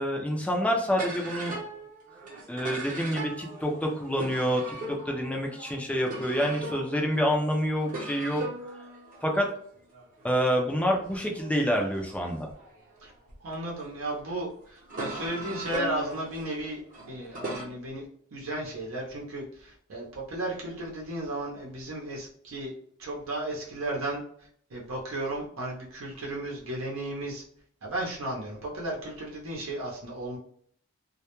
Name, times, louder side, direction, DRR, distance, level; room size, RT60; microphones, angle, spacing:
voice 1, 0.0-1.5 2.5-8.4 9.2-9.5 10.2-12.5, equal, 5° left, 1 dB, 0.3 m, -27 dB
sound 1, 0.9-13.5 14.2-17.6, right 1 dB, 40° right, 0.7 m, -39 dB
voice 2, 13.4-16.8 17.1-18.1 18.3-22.7 23.0-24.2 24.7-27.4 27.8-30.4, right 1 dB, 85° right, -3 dB, 0.6 m, -34 dB
2.1 x 2.1 x 2.9 m, 0.63 s
head